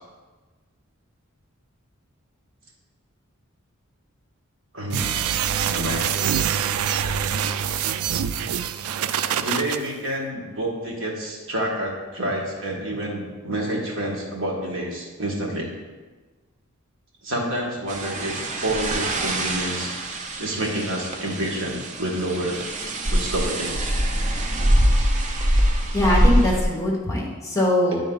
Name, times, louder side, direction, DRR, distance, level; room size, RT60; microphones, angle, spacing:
voice 1, 4.7-5.3 5.7-6.1 9.4-15.7 17.2-18.3 18.6-19.9 20.4-22.6 23.1-23.9, right 1 dB, 65° right, -3 dB, 1.5 m, -28 dB
sound 1, 4.9-9.8, right 8 dB, 85° right, 0.3 m, -25 dB
sound 2, 17.9-26.6, equal, 35° right, 0.6 m, -23 dB
voice 2, 25.9-28.0, left 1 dB, 15° left, -3 dB, 1.2 m, -22 dB
10.0 x 3.8 x 3.9 m, 1.3 s
head